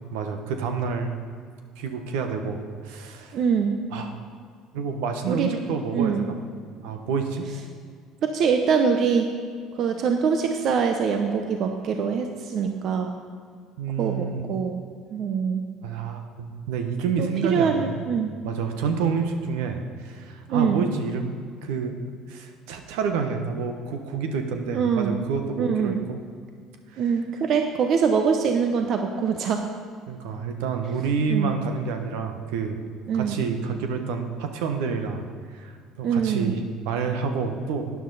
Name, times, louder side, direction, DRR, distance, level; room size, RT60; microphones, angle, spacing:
voice 1, 0.1-1.1 1.8-3.4 3.9-4.1 4.7-6.4 6.8-7.5 13.8-14.4 15.8-18.0 18.4-22.0 22.3-26.2 26.9-27.1 30.1-32.8 33.1-35.3 35.5-37.9, right 5 dB, 80° right, 6 dB, 1.1 m, -28 dB
voice 2, 3.3-3.7 5.3-5.5 5.9-6.3 8.2-9.3 9.8-13.1 14.0-14.8 15.1-15.6 17.2-18.3 20.5-20.8 24.7-25.2 25.6-26.0 27.0-29.6 31.3-31.6 33.1-33.4 36.0-36.6, right 6 dB, 55° right, 5 dB, 0.8 m, -24 dB
12.0 x 9.4 x 4.1 m, 2.1 s
hypercardioid pair, 75°, 0 cm